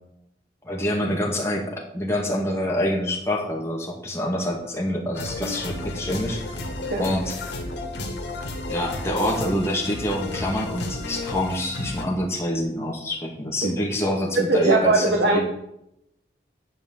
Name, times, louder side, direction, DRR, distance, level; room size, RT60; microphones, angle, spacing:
voice 1, 0.6-6.4 6.9-7.4 8.7-15.4, equal, 15° left, -1 dB, 2.0 m, -26 dB
sound 1, 5.1-12.0, left 2 dB, 85° left, 2.1 m, -32 dB
voice 2, 14.3-15.4, right 2 dB, 85° right, 1 dB, 1.3 m, -21 dB
10.5 x 4.8 x 7.5 m, 0.80 s
head